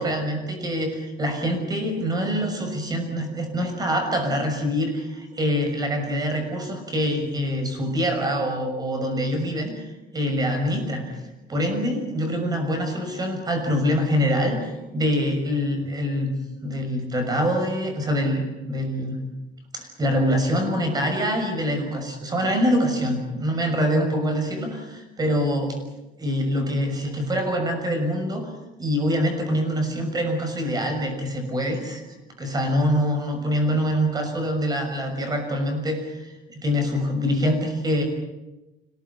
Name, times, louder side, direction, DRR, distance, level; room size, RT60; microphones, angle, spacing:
voice 1, 0.0-9.8 10.1-11.2 11.5-16.3 16.6-19.2 19.7-25.8 26.2-28.5 28.8-32.0 32.4-38.0, equal, 20° right, 5 dB, 6.3 m, -25 dB
26.5 x 18.5 x 9.7 m, 1.0 s
cardioid pair, 165°, 19 cm